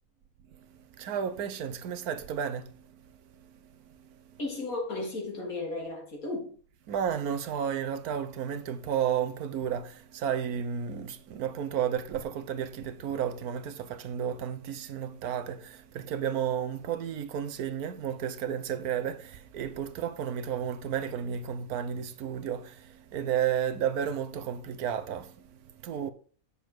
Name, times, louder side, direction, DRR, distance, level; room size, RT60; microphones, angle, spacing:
voice 1, 0.7-3.0 3.3-4.5 6.9-26.1, right 8 dB, 90° right, 1.3 m, -32 dB
voice 2, 4.4-6.5, left 2 dB, 70° left, 3.3 m, -34 dB
9.9 x 6.8 x 4.5 m
omnidirectional pair, 1.5 m